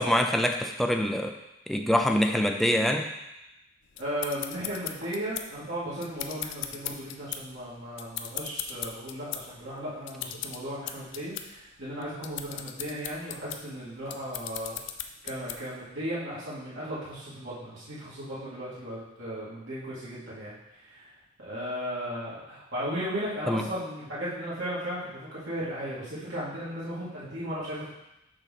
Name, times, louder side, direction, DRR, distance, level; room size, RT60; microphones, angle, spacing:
voice 1, 0.0-1.4 1.7-3.1 23.5-23.7, equal, ahead, 3 dB, 0.4 m, -25 dB
sound 1, 3.9-15.8, left 10 dB, 65° left, 0.5 m, -39 dB
voice 2, 4.0-14.8 15.2-20.5 20.8-21.1 21.4-27.9, equal, 70° right, -10 dB, 2.5 m, -36 dB
6.4 x 3.9 x 5.8 m, 0.92 s
head